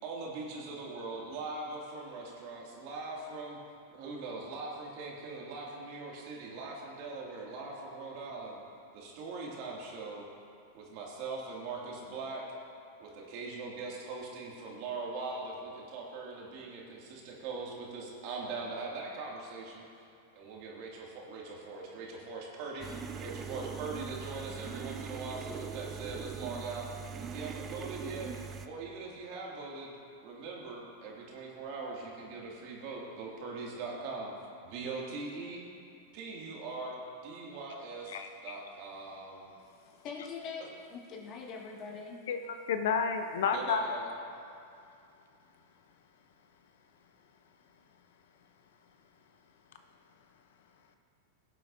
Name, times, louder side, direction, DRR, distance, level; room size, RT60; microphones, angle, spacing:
voice 1, 0.0-3.6 3.9-8.6 8.9-10.2 10.7-12.4 13.0-19.9 20.4-22.9 23.2-26.9 27.2-28.3 28.6-29.9 30.2-34.3 34.6-35.6 36.1-39.4 43.5-44.1, right 3 dB, 55° right, -3 dB, 2.3 m, -41 dB
sound 1, 22.8-28.7, right 6 dB, 30° right, 0.5 m, -41 dB
voice 2, 38.1-38.6 42.3-42.4 42.7-44.0, left 6 dB, 70° left, 7 dB, 0.7 m, -30 dB
voice 3, 39.9-42.2, left 5 dB, 40° left, -1 dB, 2.0 m, -43 dB
17.0 x 7.6 x 2.7 m, 2.6 s
hypercardioid pair, 100°, 0 cm